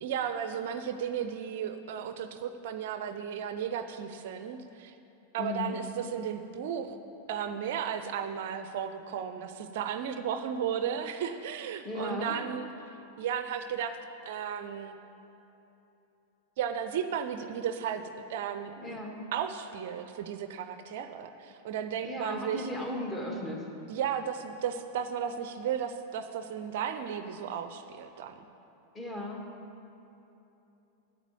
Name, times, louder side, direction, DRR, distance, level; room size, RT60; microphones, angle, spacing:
voice 1, 0.0-4.9 5.3-7.0 7.3-12.7 13.2-13.9 14.2-15.0 16.6-18.0 18.3-19.0 19.3-22.7 23.9-28.4, right 8 dB, 50° right, 9 dB, 0.5 m, -34 dB
voice 2, 5.4-5.8 11.8-12.4 18.8-19.2 22.0-23.7 28.9-29.4, left 2 dB, 15° left, 0 dB, 1.8 m, -36 dB
8.8 x 8.1 x 8.5 m, 3.0 s
figure-of-eight pair, 90°, 0 cm